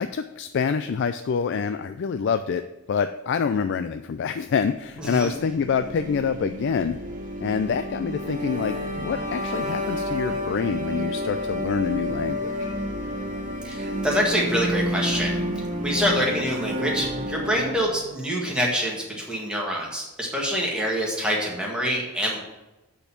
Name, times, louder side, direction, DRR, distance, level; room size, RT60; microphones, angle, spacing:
voice 1, 0.0-7.0 7.4-12.7, left 6 dB, 55° left, 9 dB, 0.3 m, -26 dB
voice 2, 5.0-5.3 13.6-22.4, equal, 5° right, -3 dB, 1.7 m, -26 dB
sound 1, 5.3-18.1, equal, 35° right, 1.8 m, -30 dB
8.0 x 4.4 x 7.0 m, 1.0 s
head